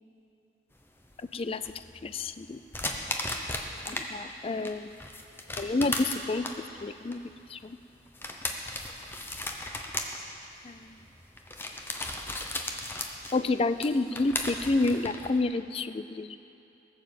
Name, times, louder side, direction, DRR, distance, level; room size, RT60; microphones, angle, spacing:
sound 1, 0.8-4.1 4.4-15.4, left 2 dB, 10° left, 0.8 m, -36 dB
voice 1, 2.0-2.6 3.9-4.9 5.6-6.4 6.8-7.2 7.5-7.8 10.6-10.8 13.3-16.4, left 3 dB, 30° left, 12 dB, 0.4 m, -29 dB
18.5 x 7.2 x 7.5 m, 2.9 s
head